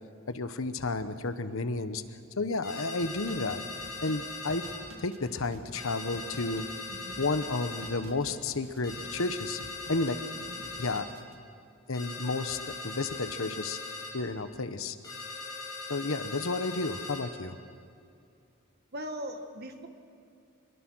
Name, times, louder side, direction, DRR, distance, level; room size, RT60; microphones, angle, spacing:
voice 1, 0.3-2.0 2.4-3.7 4.0-4.7 5.0-6.6 7.2-9.6 9.9-10.2 10.8-11.1 11.9-13.8 14.1-15.0 15.9-17.6, left 3 dB, 70° left, 11 dB, 1.1 m, -32 dB
sound 1, 2.6-4.8 5.7-7.9 8.8-11.0 11.9-14.1 15.0-17.2, left 3 dB, 20° left, 5.9 m, -40 dB
sound 2, 3.0-11.3, right 1 dB, 75° right, 1.7 m, -50 dB
voice 2, 6.9-7.2 10.5-10.6 18.9-19.9, equal, 50° right, 6 dB, 1.7 m, -40 dB
25.5 x 21.5 x 6.3 m, 2.5 s
head